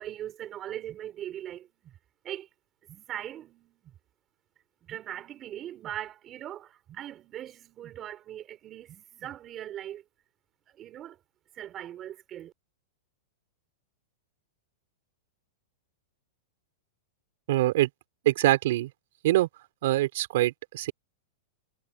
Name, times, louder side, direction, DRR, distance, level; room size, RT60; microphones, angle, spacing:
voice 1, 0.0-1.9 2.2-2.5 2.9-3.9 4.8-10.0 10.7-11.2 11.5-12.5, right 11 dB, 25° right, 4.7 m, -40 dB
voice 2, 17.5-17.9 18.2-18.9 19.2-19.5 19.8-20.9, right 16 dB, 60° right, 4.4 m, -24 dB
supercardioid pair, 155°, 0 cm